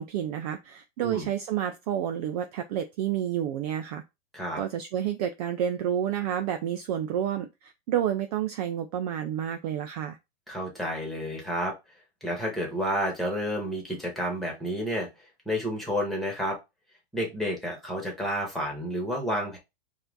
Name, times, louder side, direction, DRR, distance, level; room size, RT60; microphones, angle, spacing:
voice 1, 0.0-4.0 4.6-10.2, right 10 dB, 40° right, 0.4 m, -30 dB
voice 2, 10.5-11.7 12.2-15.1 15.5-16.6 17.1-19.6, equal, ahead, 1.7 m, -30 dB
4.7 x 2.6 x 3.9 m
hypercardioid pair, 140°, 33 cm